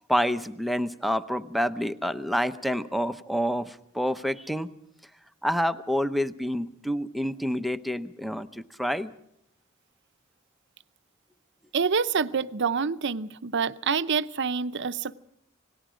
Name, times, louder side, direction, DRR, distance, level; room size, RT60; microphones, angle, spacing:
voice 1, 0.1-4.7 5.4-9.1, equal, ahead, 10 dB, 0.7 m, -28 dB
voice 2, 11.7-15.2, right 5 dB, 60° right, 13 dB, 0.7 m, -27 dB
27.5 x 19.0 x 5.0 m, 0.74 s
head